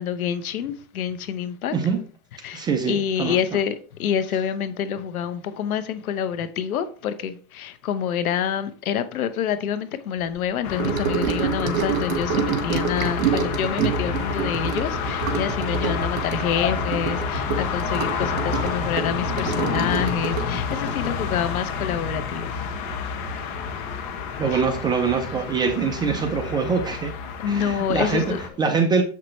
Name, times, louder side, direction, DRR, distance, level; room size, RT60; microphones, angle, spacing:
voice 1, 0.0-1.7 2.4-22.5 24.5-24.6 27.4-28.4, left 8 dB, 85° left, 1.0 m, -27 dB
voice 2, 2.5-3.4 24.4-27.1 27.5-29.0, right 5 dB, 10° right, 0.4 m, -24 dB
sound 1, 10.6-28.5, left 5 dB, 45° left, 1.4 m, -29 dB
Gurgling / Sink (filling or washing) / Trickle dribble, 10.8-22.5 22.7-23.0 23.3-23.4, right 8 dB, 70° right, 1.5 m, -27 dB
7.6 x 5.7 x 3.2 m
supercardioid pair, 135°, 42 cm